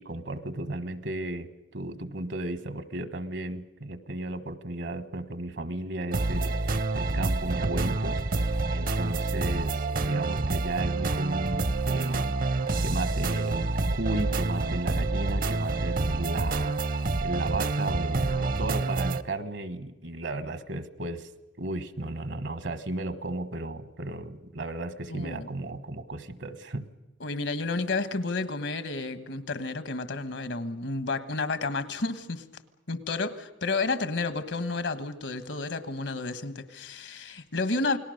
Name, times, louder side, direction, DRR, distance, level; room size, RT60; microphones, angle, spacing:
voice 1, 0.0-12.4 12.8-21.3 21.6-26.9, right 2 dB, 70° right, 1.3 m, -34 dB
sound 1, 6.1-19.2, right 3 dB, 50° right, 0.7 m, -28 dB
voice 2, 25.1-25.5 27.2-32.4 32.9-38.0, left 3 dB, 80° left, 1.4 m, -31 dB
28.5 x 19.0 x 6.5 m
head